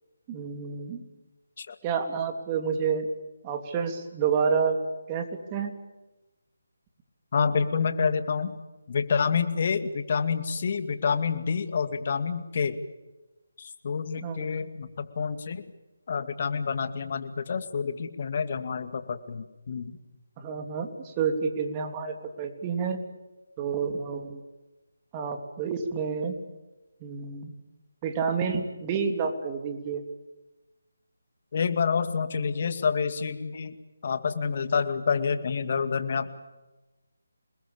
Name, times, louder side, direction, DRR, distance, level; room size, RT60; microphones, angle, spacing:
voice 1, 0.3-1.0 1.8-3.1 3.4-4.8 5.1-5.7 14.2-14.4 20.4-23.0 23.6-24.4 25.1-26.4 27.0-27.5 28.0-30.0, right 6 dB, 20° right, 5 dB, 3.1 m, -29 dB
voice 2, 7.3-8.5 8.9-12.8 13.6-15.6 16.1-20.0 31.5-33.8 34.0-36.3, left 6 dB, 45° left, 10 dB, 2.2 m, -28 dB
27.5 x 20.5 x 8.8 m, 1.1 s
figure-of-eight pair, 155°, 0 cm